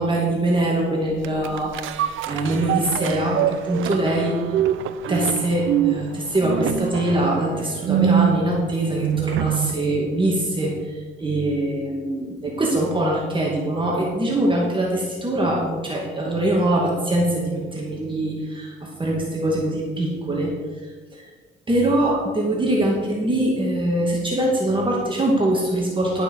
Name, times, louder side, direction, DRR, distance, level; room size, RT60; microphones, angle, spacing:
voice 1, 0.0-4.4 5.1-10.9 11.2-20.5 21.7-26.2, right 1 dB, 25° right, -3 dB, 2.3 m, -23 dB
sound 1, 1.2-9.8 10.2-10.3, right 9 dB, 85° right, 0.7 m, -25 dB
12.0 x 6.8 x 6.5 m, 1.4 s
cardioid pair, 90°, 20 cm